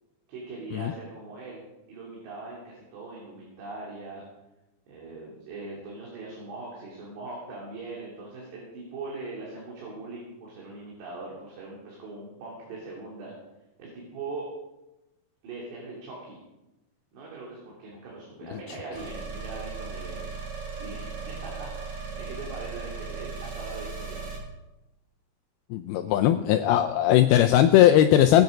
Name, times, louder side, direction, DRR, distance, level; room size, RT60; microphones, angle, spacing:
voice 1, 0.3-1.6 1.9-4.2 4.9-13.3 13.8-14.5 15.4-16.4 17.1-24.3, right 3 dB, 90° right, -4 dB, 5.2 m, -41 dB
sound 1, 18.9-24.4, right 4 dB, 70° right, 5.5 m, -37 dB
voice 2, 25.7-28.4, left 12 dB, 80° left, 7 dB, 2.4 m, -19 dB
19.0 x 9.3 x 5.1 m, 0.97 s
omnidirectional pair, 4.7 m